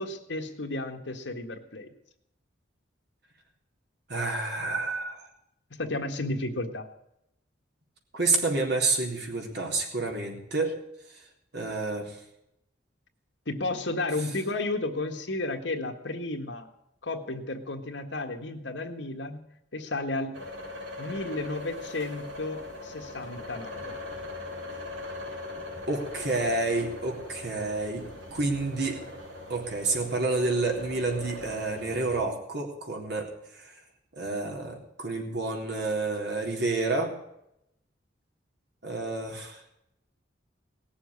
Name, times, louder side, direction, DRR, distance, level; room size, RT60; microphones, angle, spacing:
voice 1, 0.0-1.9 5.8-6.9 13.5-16.7 17.0-19.4 19.7-20.3 21.0-24.0, left 2 dB, 70° left, 5 dB, 1.7 m, -33 dB
voice 2, 4.1-5.3 8.1-10.7 11.5-12.2 25.9-28.1 28.3-29.0 29.5-33.7 34.2-37.1 38.8-39.6, right 3 dB, 60° right, 1 dB, 3.8 m, -29 dB
sound 1, 20.3-32.2, left 2 dB, 80° right, 4.1 m, -40 dB
18.5 x 7.2 x 9.7 m, 0.80 s
head